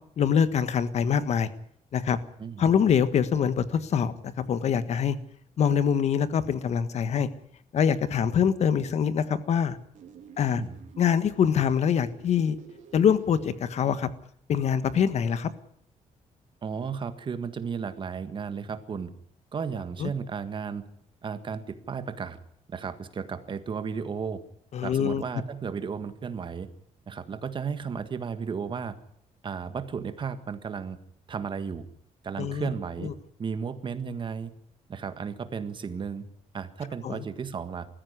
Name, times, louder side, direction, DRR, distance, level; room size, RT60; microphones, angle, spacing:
voice 1, 0.2-1.5 1.9-2.2 2.6-5.2 5.6-7.3 7.7-9.8 10.4-10.6 11.0-12.6 12.9-14.1 14.5-15.5 20.0-20.1 24.7-25.2 32.4-32.7 33.0-33.1 37.0-37.2, left 7 dB, 55° left, 13 dB, 1.5 m, -24 dB
voice 2, 2.4-2.7 10.5-10.8 16.6-19.1 19.5-20.8 21.2-22.4 22.7-24.4 24.8-26.7 27.1-28.9 29.4-31.0 31.3-31.8 32.2-33.1 33.4-34.5 34.9-36.2 36.5-37.9, right 6 dB, 35° right, 10 dB, 1.7 m, -34 dB
sound 1, 9.9-13.9, right 7 dB, 65° right, 3.5 m, -50 dB
20.0 x 14.5 x 9.7 m, 0.69 s
cardioid pair, 150°, 13 cm